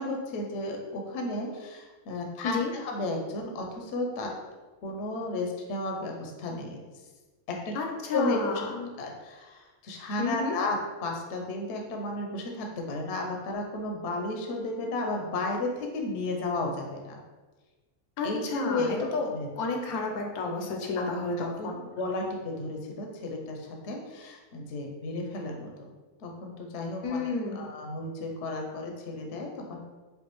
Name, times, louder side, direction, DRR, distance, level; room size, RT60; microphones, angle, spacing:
voice 1, 0.0-4.3 4.8-6.8 7.5-7.7 8.1-8.4 9.0-10.8 11.0-17.2 18.2-19.5 21.0-21.1 21.6-21.7 22.0-25.7 26.2-27.2 27.5-29.8, left 2 dB, 60° left, 1 dB, 0.8 m, -33 dB
voice 2, 7.7-8.9 10.2-10.6 18.2-19.3 19.5-21.8 27.0-27.6, left 3 dB, 85° left, 1 dB, 1.1 m, -31 dB
5.3 x 2.5 x 3.0 m, 1.3 s
omnidirectional pair, 1.5 m